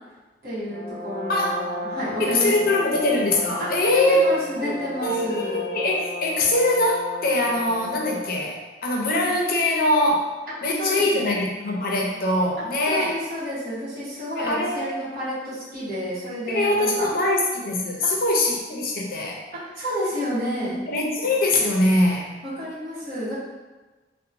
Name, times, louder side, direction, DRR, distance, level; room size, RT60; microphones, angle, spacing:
voice 1, 0.4-2.5 3.6-3.7 4.1-5.6 10.7-11.2 12.8-17.1 19.7-20.8 22.4-23.3, equal, 55° right, -10 dB, 1.0 m, -30 dB
Brass instrument, 0.7-8.4, left 2 dB, 80° right, 0.7 m, -34 dB
voice 2, 1.3-1.7 2.2-4.4 4.6-4.7 5.0-10.3 10.6-13.1 14.3-15.0 16.5-19.4 20.9-22.3, left 1 dB, 55° left, -1 dB, 0.5 m, -22 dB
2.8 x 2.1 x 2.5 m, 1.2 s
head